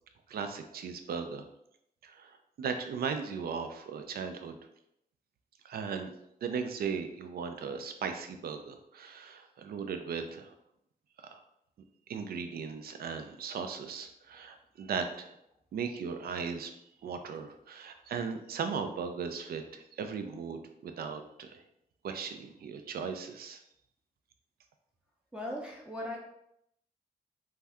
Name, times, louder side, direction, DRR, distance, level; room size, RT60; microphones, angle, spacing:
voice 1, 0.3-1.5 2.0-4.6 5.6-6.1 6.4-10.5 11.2-11.4 12.1-15.3 15.7-16.7 17.0-21.6 22.0-23.6, right 6 dB, 75° right, 7 dB, 0.4 m, -37 dB
voice 2, 25.3-26.2, left 1 dB, 5° right, -3 dB, 0.5 m, -38 dB
2.6 x 2.3 x 3.3 m, 0.77 s
cardioid pair, 80°, 16 cm